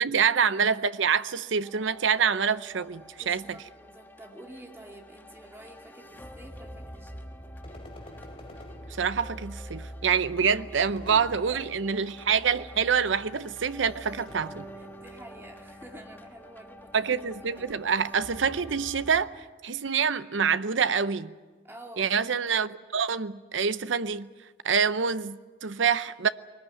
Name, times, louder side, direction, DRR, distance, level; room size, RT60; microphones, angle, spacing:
voice 1, 0.0-3.6 8.9-14.7 16.9-19.3 19.6-21.3 22.0-24.3 24.6-26.3, right 6 dB, 80° right, 0.7 m, -26 dB
sound 1, 1.6-19.3, equal, 10° left, 1.3 m, -46 dB
voice 2, 3.2-7.5 11.0-11.7 14.7-17.0 17.5-17.7 21.6-22.1, right 1 dB, 15° right, 2.3 m, -48 dB
sound 2, 7.6-9.6 10.8-12.1 14.3-15.3, left 1 dB, 30° left, 2.7 m, -48 dB
21.5 x 19.5 x 9.3 m
head